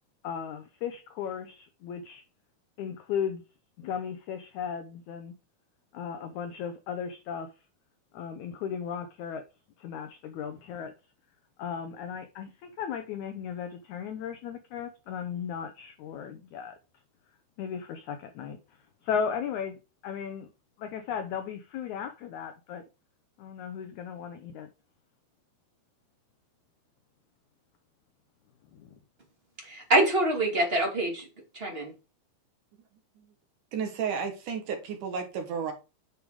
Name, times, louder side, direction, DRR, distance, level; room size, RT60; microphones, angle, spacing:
voice 1, 0.2-2.2 2.8-3.4 3.8-5.3 5.9-7.5 8.1-9.4 9.8-10.9 11.6-16.8 17.6-18.6 19.0-19.8 20.0-20.5 20.8-22.8 23.4-24.7 28.7-28.9, left 7 dB, 85° left, 1.6 m, -36 dB
voice 2, 29.6-31.2 31.5-31.9, right 1 dB, 20° right, 1.9 m, -25 dB
voice 3, 33.7-35.7, right 6 dB, 65° right, 2.5 m, -32 dB
9.5 x 5.1 x 4.8 m
omnidirectional pair, 4.4 m